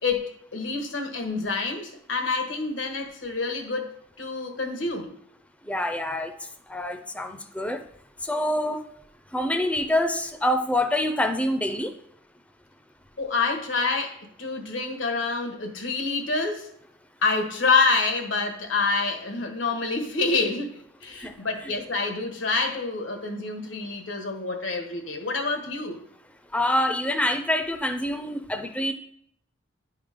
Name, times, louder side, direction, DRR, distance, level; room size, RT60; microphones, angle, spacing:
voice 1, 0.0-3.9 4.2-5.2 13.2-16.7 17.2-26.1, left 3 dB, 85° left, 4 dB, 1.3 m, -27 dB
voice 2, 5.6-7.8 8.2-8.8 9.3-12.0 21.2-21.5 26.5-28.9, left 1 dB, 5° left, 6 dB, 0.4 m, -26 dB
10.5 x 3.6 x 5.0 m, 0.73 s
head